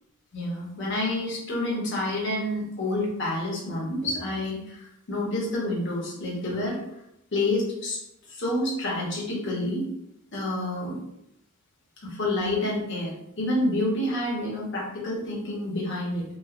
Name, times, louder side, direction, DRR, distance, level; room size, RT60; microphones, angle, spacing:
voice 1, 0.3-6.8 7.3-8.0 8.3-9.9 10.3-11.0 12.0-16.2, left 1 dB, 55° left, -4 dB, 0.8 m, -28 dB
3.1 x 2.0 x 2.4 m, 0.81 s
head